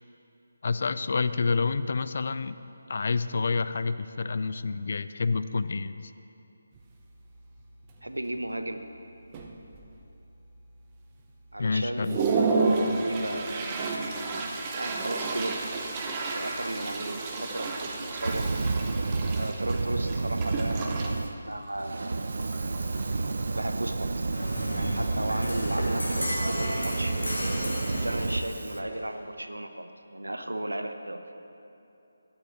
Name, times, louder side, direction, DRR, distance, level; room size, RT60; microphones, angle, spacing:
voice 1, 0.6-2.5 2.9-6.1 11.6-12.2, left 4 dB, 45° left, 13 dB, 0.3 m, -28 dB
Toilet flush, 6.8-6.9 7.3-7.6 7.9-8.4 9.0-9.1 9.3-10.1 10.6-10.7 11.2-11.3 11.7-23.7, right 3 dB, 20° right, 0.7 m, -31 dB
voice 2, 8.0-8.9 11.5-13.8 14.7-15.6 16.3-18.5 19.4-22.3 23.5-24.3 24.7-27.1 27.9-31.2, right 1 dB, 75° right, 7 dB, 0.7 m, -35 dB
Fire, 18.2-21.3 21.7-28.8, right 3 dB, 55° right, 0.4 m, -30 dB
sound 1, 24.3-29.3, left 1 dB, 75° left, 2.0 m, -34 dB
8.9 x 6.5 x 7.5 m, 2.8 s
figure-of-eight pair, 150°, 0 cm